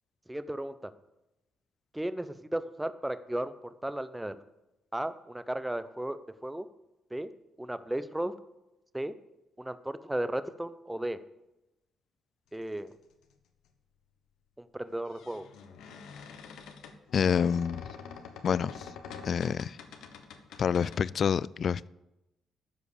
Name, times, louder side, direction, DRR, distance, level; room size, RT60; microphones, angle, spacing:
voice 1, 0.3-0.7 1.9-4.3 4.9-6.7 7.1-7.3 7.6-8.3 8.9-9.1 9.6-11.2 12.5-13.0 14.6-15.5 19.5-19.6, right 1 dB, 10° right, 12 dB, 0.7 m, -35 dB
sound 1, 13.2-13.3 14.9-21.0, left 6 dB, 85° left, 1.2 m, -46 dB
voice 2, 17.1-17.9 18.4-18.9 19.2-19.8 20.6-21.9, left 7 dB, 55° left, 21 dB, 0.3 m, -27 dB
13.0 x 5.0 x 8.4 m, 0.95 s
cardioid pair, 90°, 0 cm